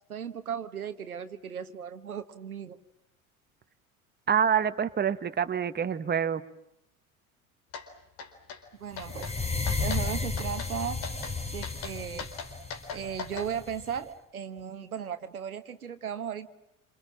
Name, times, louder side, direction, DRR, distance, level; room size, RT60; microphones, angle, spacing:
voice 1, 0.1-2.8 8.8-9.3 9.8-11.0 11.5-12.3 12.9-16.5, right 8 dB, 85° right, 10 dB, 1.4 m, -36 dB
voice 2, 4.3-6.4, right 8 dB, 25° right, 10 dB, 1.5 m, -26 dB
sound 1, 7.7-7.9 8.2-8.6 9.0-9.3 9.7-10.0 10.4-10.7 11.0-11.3 11.6-13.5, left 6 dB, 60° left, 4.3 m, -39 dB
sound 2, 8.9-14.0, left 4 dB, 15° left, 3.8 m, -33 dB
27.5 x 27.0 x 7.5 m, 0.82 s
figure-of-eight pair, 70°, 43 cm